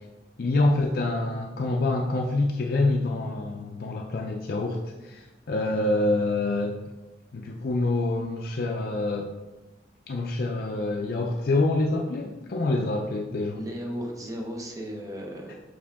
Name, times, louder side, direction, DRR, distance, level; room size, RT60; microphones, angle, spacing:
voice 1, 0.4-6.8 7.3-9.3 10.1-13.6 15.5-15.6, left 2 dB, 55° left, 1 dB, 0.5 m, -26 dB
voice 2, 13.6-15.5, equal, 20° right, 0 dB, 0.9 m, -35 dB
5.9 x 4.9 x 3.5 m, 1.1 s
head